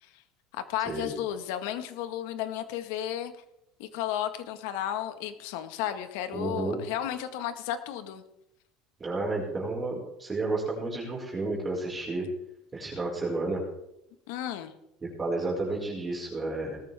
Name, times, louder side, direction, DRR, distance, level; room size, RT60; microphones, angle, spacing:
voice 1, 0.5-3.3 3.8-8.2 14.3-14.7, left 11 dB, 85° left, 9 dB, 1.7 m, -33 dB
voice 2, 6.3-6.8 9.0-12.3 12.7-13.6 15.0-16.8, right 2 dB, 20° right, -4 dB, 5.6 m, -31 dB
19.0 x 14.0 x 3.7 m, 0.81 s
cardioid pair, 130°, 0 cm